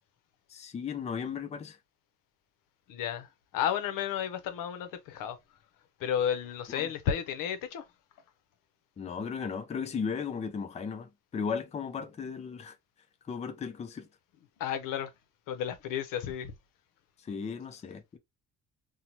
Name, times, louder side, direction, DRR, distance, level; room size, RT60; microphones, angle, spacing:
voice 1, 0.5-1.8 6.7-6.9 9.0-12.8 13.3-14.1 17.2-18.2, left 6 dB, 20° left, 0.4 m, -36 dB
voice 2, 2.9-3.3 3.5-5.4 6.0-7.8 14.6-15.1 15.5-16.5, left 9 dB, 80° left, 0.7 m, -32 dB
2.7 x 2.1 x 2.9 m
cardioid pair, 120°, 32 cm